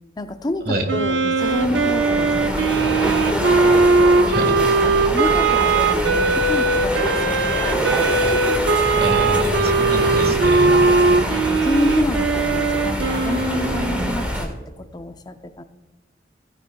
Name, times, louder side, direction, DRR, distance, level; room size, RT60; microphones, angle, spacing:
voice 1, 0.2-3.6 4.2-8.2 10.8-15.6, left 2 dB, 20° left, 8 dB, 0.6 m, -29 dB
Wind instrument woodwind instrument, 0.9-14.3, right 3 dB, 85° right, 0.8 m, -19 dB
sound 1, 1.4-14.4, equal, 5° right, 1.7 m, -25 dB
voice 2, 9.0-10.8, right 1 dB, 55° right, 5 dB, 1.7 m, -25 dB
16.5 x 9.4 x 2.3 m, 1.2 s
head